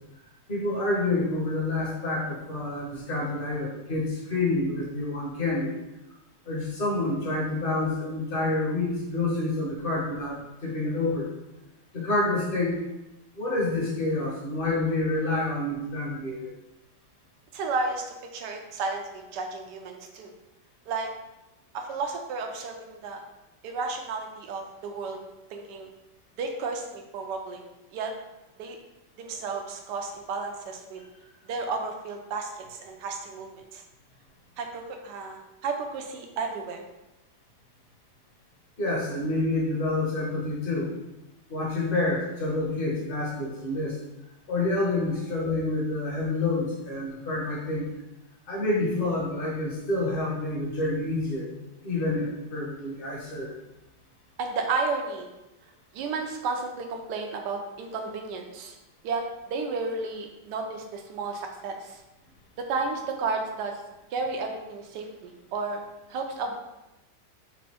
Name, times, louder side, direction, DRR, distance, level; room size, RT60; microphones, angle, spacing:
voice 1, 0.5-5.7 6.4-11.3 11.9-12.8 13.3-16.5 38.8-40.9 41.5-44.0 44.5-47.9 48.5-51.5 51.8-53.5, left 2 dB, 35° left, -4 dB, 1.2 m, -28 dB
voice 2, 17.5-18.0 18.3-20.3 20.9-21.1 21.7-23.2 23.6-25.2 25.5-25.9 26.4-27.6 27.9-28.1 28.6-28.8 29.2-31.0 31.5-33.8 34.6-36.9 54.4-55.3 55.9-58.7 59.0-62.0 62.7-63.8 64.1-65.8 66.1-66.6, right 4 dB, 80° right, 3 dB, 1.3 m, -32 dB
4.3 x 2.7 x 4.2 m, 0.97 s
omnidirectional pair, 1.8 m